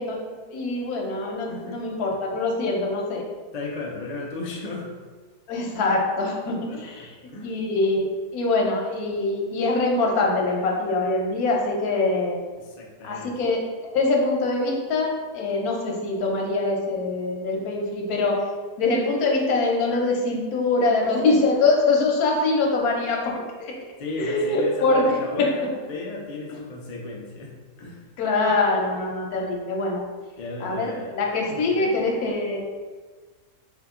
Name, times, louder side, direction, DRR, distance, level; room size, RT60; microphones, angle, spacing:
voice 1, 0.0-3.2 5.5-7.1 7.4-12.4 13.0-18.4 18.8-23.3 23.6-23.7 24.2-25.2 28.2-30.0 30.6-32.6, left 3 dB, 90° left, 0 dB, 1.2 m, -24 dB
voice 2, 1.5-1.8 3.5-4.9 6.7-7.6 12.6-13.4 24.0-28.0 30.4-32.1, left 3 dB, 45° left, -1 dB, 0.5 m, -35 dB
3.9 x 2.8 x 3.6 m, 1.4 s
omnidirectional pair, 1.5 m